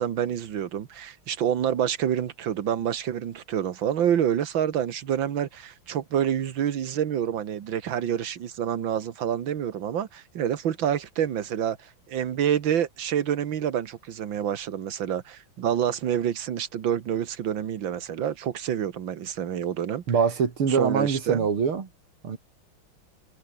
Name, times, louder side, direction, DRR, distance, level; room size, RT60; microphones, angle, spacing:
voice 1, 0.0-20.0 20.7-21.5, right 9 dB, 70° right, 2.1 m, -27 dB
voice 2, 20.1-21.9 22.2-22.4, right 6 dB, 85° right, 3.5 m, -24 dB
omnidirectional pair, 2.3 m